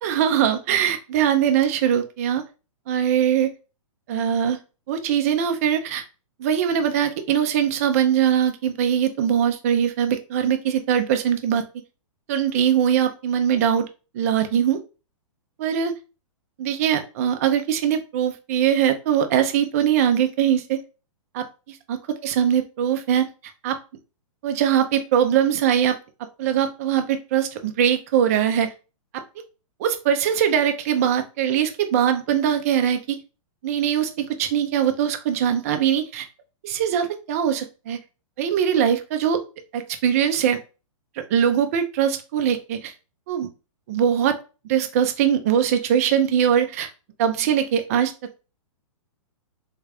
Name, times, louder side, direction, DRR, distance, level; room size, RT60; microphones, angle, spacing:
voice 1, 0.0-2.4 2.9-3.5 4.1-4.6 4.9-6.0 6.4-11.6 12.3-13.9 14.1-14.8 15.6-15.9 16.6-20.8 21.3-22.0 22.2-23.3 23.6-23.8 24.4-26.0 26.4-28.7 29.1-29.2 29.8-33.2 33.6-36.3 36.6-38.0 38.4-39.4 39.7-40.6 41.2-42.9 43.3-43.5 43.9-44.4 44.7-46.9 47.2-48.1, right 9 dB, 25° right, 7 dB, 0.4 m, -21 dB
3.5 x 2.3 x 3.2 m, 0.32 s
hypercardioid pair, 165°, 18 cm